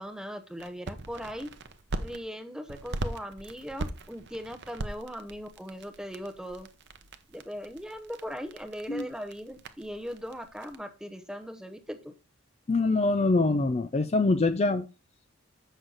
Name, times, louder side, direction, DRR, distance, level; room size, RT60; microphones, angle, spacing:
voice 1, 0.0-1.5 2.0-6.7 7.3-12.1, equal, 5° right, 0.7 m, -39 dB
sound 1, 0.6-2.2 2.7-10.7, right 2 dB, 50° right, 0.7 m, -40 dB
voice 2, 12.7-14.8, left 3 dB, 30° left, 0.4 m, -24 dB
7.9 x 6.2 x 3.9 m
head